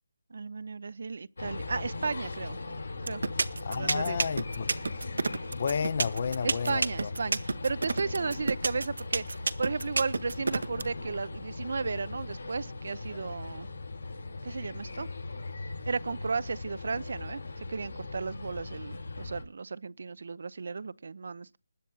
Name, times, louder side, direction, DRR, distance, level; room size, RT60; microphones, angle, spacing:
voice 1, 0.3-2.6 3.0-3.2 3.7-4.2 6.4-13.7 14.4-15.1 15.9-17.4 17.7-21.6, right 4 dB, 60° right, 0.6 m, -34 dB
sound 1, 1.4-19.4, left 3 dB, 85° left, 5.3 m, -39 dB
sound 2, 3.1-10.8, right 3 dB, 75° right, 0.9 m, -28 dB
voice 2, 3.6-4.7 5.5-7.1, left 6 dB, 45° left, 0.7 m, -31 dB
20.5 x 8.3 x 3.9 m
figure-of-eight pair, 165°, 0 cm